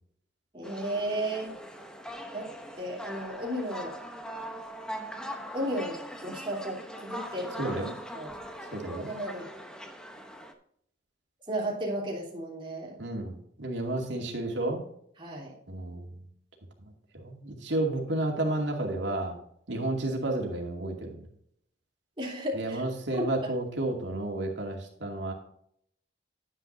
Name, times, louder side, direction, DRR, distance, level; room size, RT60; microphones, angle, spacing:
voice 1, 0.5-1.5 2.3-2.5 2.8-3.9 5.5-7.7 8.1-8.3 8.8-9.5 11.5-13.0 15.2-15.5 22.2-22.8 23.1-23.5, right 1 dB, 30° right, -3 dB, 3.3 m, -34 dB
sound 1, 0.6-10.5, equal, 5° left, 0.9 m, -41 dB
voice 2, 7.6-7.9 8.7-9.1 13.0-14.8 15.7-16.2 17.1-19.3 19.7-21.3 22.5-25.3, right 2 dB, 90° right, 1 dB, 2.3 m, -31 dB
10.0 x 9.9 x 2.7 m, 0.68 s
head